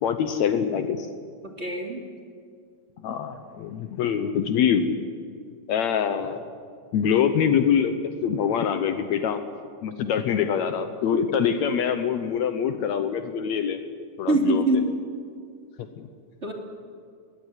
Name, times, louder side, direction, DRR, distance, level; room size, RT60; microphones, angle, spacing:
voice 1, 0.0-1.1 3.0-5.0 5.7-6.4 6.9-9.4 9.8-13.8 14.2-14.9 15.8-16.1, left 8 dB, 70° left, 9 dB, 2.1 m, -24 dB
voice 2, 1.4-2.0 14.3-14.9 16.4-16.5, right 2 dB, 20° right, 1 dB, 2.7 m, -23 dB
21.0 x 18.5 x 9.8 m, 2.2 s
omnidirectional pair, 3.6 m